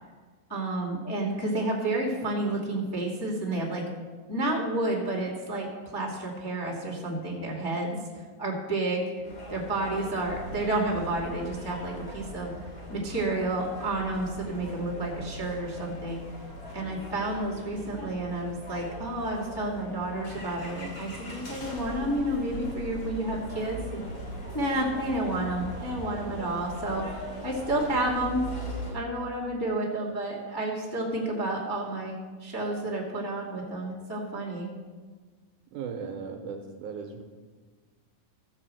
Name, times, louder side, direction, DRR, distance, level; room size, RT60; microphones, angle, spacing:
voice 1, 0.5-3.8 4.3-8.0 8.4-9.1 9.5-12.5 12.9-16.2 16.7-24.0 24.5-28.4 28.9-34.7, right 1 dB, 10° left, -3 dB, 1.2 m, -30 dB
sound 1, 9.2-28.9, equal, 45° left, 4.2 m, -40 dB
voice 2, 35.7-37.2, right 6 dB, 70° right, 3 dB, 2.2 m, -37 dB
14.5 x 5.5 x 7.6 m, 1.4 s
omnidirectional pair, 4.1 m